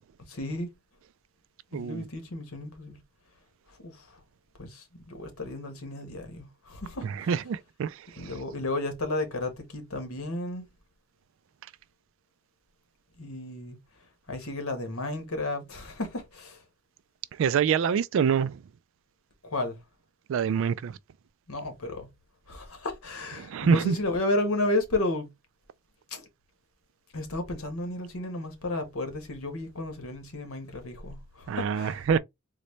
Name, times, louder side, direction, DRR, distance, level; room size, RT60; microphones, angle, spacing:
voice 1, 0.3-0.7 1.7-3.0 3.8-4.2 4.6-7.4 8.2-10.7 13.2-13.8 14.3-16.6 19.4-19.8 21.5-22.1 22.5-25.3 26.1-26.3 27.1-32.0, left 2 dB, 85° left, 1.1 m, -33 dB
voice 2, 1.7-2.0 7.0-8.3 17.4-18.6 20.3-21.0 23.4-24.0 31.5-32.2, right 6 dB, 65° right, 0.3 m, -26 dB
3.9 x 2.1 x 3.1 m
head